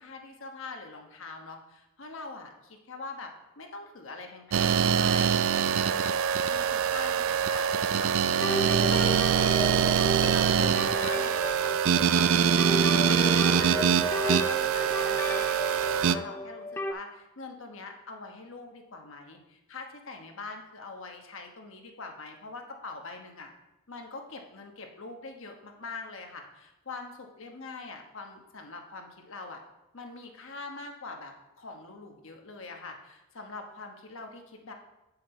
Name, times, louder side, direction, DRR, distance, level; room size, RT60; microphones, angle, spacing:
voice 1, 0.0-6.2 6.5-23.5 23.9-29.6 29.9-34.7, left 3 dB, 60° left, 3 dB, 1.2 m, -43 dB
sound 1, 4.5-16.2, right 8 dB, 65° right, 0.3 m, -24 dB
sound 2, 8.4-16.9, left 1 dB, 10° left, 0.4 m, -33 dB
8.7 x 5.8 x 4.4 m, 0.97 s
head